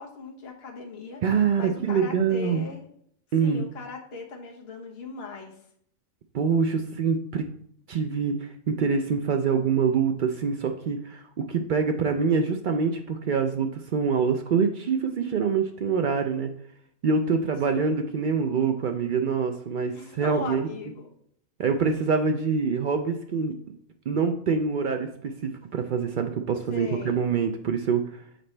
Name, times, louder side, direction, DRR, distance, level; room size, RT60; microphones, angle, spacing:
voice 1, 0.0-1.2 1.6-2.9 3.4-5.6 17.6-18.0 19.9-21.1 26.7-27.2, left 4 dB, 50° left, 1 dB, 1.3 m, -38 dB
voice 2, 1.2-2.7 3.3-3.7 6.3-7.5 7.9-16.5 17.0-20.7 21.6-23.5 24.1-28.2, right 5 dB, 80° right, 5 dB, 0.4 m, -25 dB
7.7 x 4.3 x 3.2 m, 0.66 s
omnidirectional pair, 1.4 m